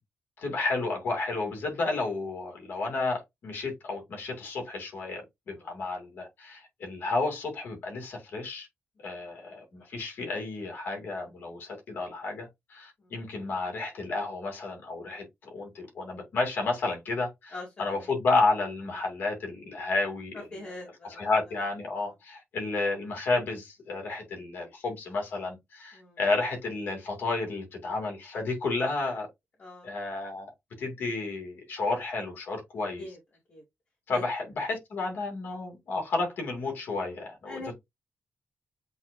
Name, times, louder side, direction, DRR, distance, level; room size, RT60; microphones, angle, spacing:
voice 1, 0.4-8.7 9.0-20.4 21.1-29.3 29.8-30.5 30.8-33.1 34.1-37.6, left 3 dB, 65° left, 2.5 m, -31 dB
voice 2, 9.0-9.3 13.0-13.1 17.5-18.1 20.3-21.2 25.9-26.2 29.6-29.9 33.0-33.2 33.5-33.6 34.1-34.3 37.5-37.8, left 2 dB, 40° left, 2.0 m, -43 dB
8.1 x 2.7 x 2.3 m
wide cardioid pair, 160°, 4 cm